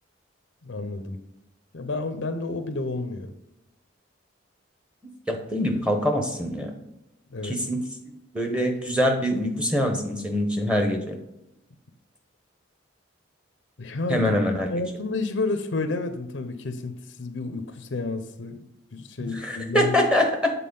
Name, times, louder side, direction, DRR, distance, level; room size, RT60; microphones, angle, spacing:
voice 1, 0.6-1.2 1.7-3.3 7.3-7.6 13.8-14.3 14.7-18.7 18.9-20.0, left 3 dB, 70° left, 9 dB, 0.6 m, -30 dB
voice 2, 5.0-6.7 7.4-7.8 8.3-11.2 14.1-14.7 19.2-20.5, equal, 5° right, 2 dB, 0.8 m, -24 dB
7.5 x 4.0 x 5.3 m, 0.86 s
head